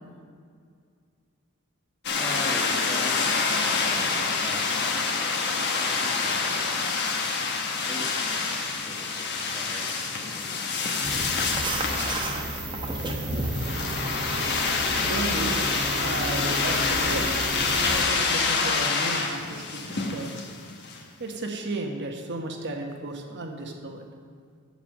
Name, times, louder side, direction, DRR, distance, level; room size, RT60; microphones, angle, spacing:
sound 1, 2.0-21.0, left 4 dB, 50° left, 1.1 m, -27 dB
voice 1, 2.1-3.3 3.8-5.1 5.6-6.6 7.9-12.5, left 1 dB, 15° left, -1 dB, 1.4 m, -42 dB
sound 2, 11.0-18.0, right 1 dB, 20° right, 0.9 m, -32 dB
voice 2, 15.0-15.5 16.0-17.4 17.6-20.4 21.2-24.1, right 2 dB, 55° right, 3 dB, 1.1 m, -34 dB
7.2 x 7.1 x 7.4 m, 2.1 s
head